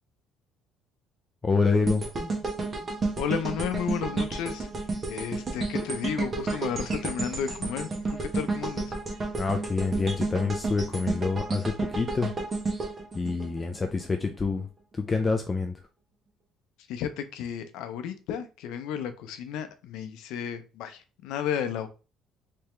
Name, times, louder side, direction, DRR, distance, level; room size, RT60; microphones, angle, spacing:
voice 1, 1.4-2.1 9.4-12.3 13.1-14.7 14.9-15.8, left 4 dB, 25° left, 0.4 m, -27 dB
sound 1, 1.9-14.0 14.5-14.6, right 3 dB, 30° right, 1.0 m, -31 dB
voice 2, 3.2-4.7 5.1-7.9 8.2-9.0 16.9-21.9, left 8 dB, 80° left, 0.5 m, -33 dB
3.4 x 2.9 x 3.2 m
cardioid pair, 125°, 0 cm